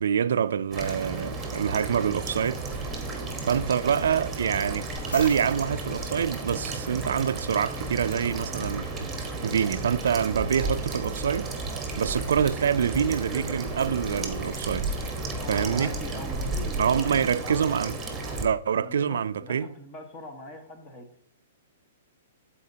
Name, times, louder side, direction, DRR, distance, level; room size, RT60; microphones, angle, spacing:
voice 1, 0.0-2.6 3.4-9.1 9.4-11.5 12.0-14.9 15.5-15.9 16.8-18.0 18.4-19.7, right 8 dB, 75° right, 0.3 m, -26 dB
sound 1, 0.7-18.5, right 2 dB, 10° right, 1.3 m, -33 dB
sound 2, 4.9-7.2 10.6-10.7, left 3 dB, 80° left, 1.5 m, -45 dB
voice 2, 15.3-17.6 18.7-21.1, left 1 dB, 30° left, 1.3 m, -42 dB
12.0 x 4.3 x 2.8 m
hypercardioid pair, 140°, 0 cm